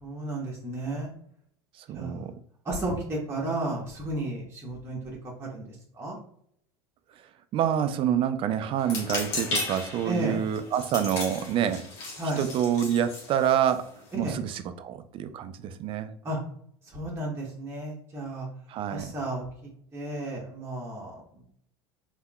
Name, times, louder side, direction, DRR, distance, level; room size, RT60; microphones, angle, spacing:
voice 1, 0.0-1.1 1.9-2.3 2.6-5.6 6.0-6.2 10.0-10.4 12.2-12.4 14.1-14.4 16.2-16.4 16.9-18.5 18.9-19.4 19.9-21.2, right 2 dB, 20° right, -4 dB, 1.1 m, -33 dB
voice 2, 1.9-2.3 7.5-11.9 12.4-13.9 14.2-16.1 18.7-19.1, right 9 dB, 40° right, 11 dB, 0.4 m, -27 dB
sound 1, 8.8-14.1, left 3 dB, 55° left, 1.4 m, -35 dB
3.5 x 2.8 x 2.3 m, 0.66 s
hypercardioid pair, 80°, 14 cm